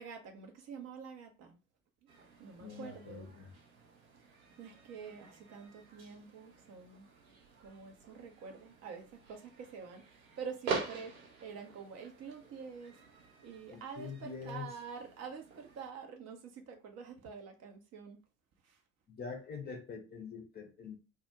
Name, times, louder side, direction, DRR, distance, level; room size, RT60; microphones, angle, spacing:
voice 1, 0.0-1.6 2.4-3.3 4.2-4.3 4.6-7.1 7.6-13.0 13.4-18.2 18.6-18.8, right 6 dB, 40° right, 0.5 m, -47 dB
sound 1, 2.1-15.9, right 4 dB, 80° right, 0.6 m, -46 dB
voice 2, 2.6-3.5 13.7-14.7 19.1-21.0, left 5 dB, 25° left, 0.5 m, -44 dB
2.2 x 2.0 x 2.7 m
figure-of-eight pair, 55°, 42 cm